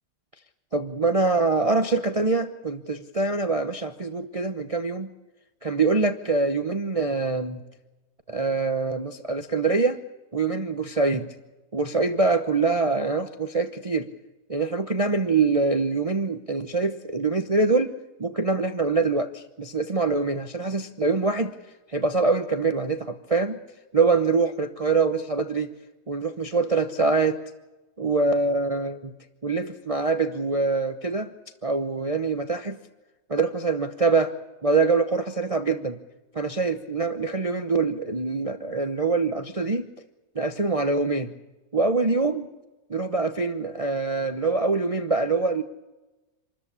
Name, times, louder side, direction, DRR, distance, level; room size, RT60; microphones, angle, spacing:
voice 1, 0.7-5.1 5.6-7.6 8.3-10.0 10.3-11.3 11.7-14.1 14.5-17.9 18.2-21.5 21.9-23.6 23.9-25.7 26.1-27.4 28.0-29.1 29.4-31.3 31.6-32.8 33.3-34.3 34.6-36.0 36.3-39.9 40.3-41.3 41.7-42.5 42.9-45.6, right 3 dB, 30° right, 8 dB, 0.8 m, -24 dB
27.0 x 13.5 x 9.9 m, 1.1 s
omnidirectional pair, 1.7 m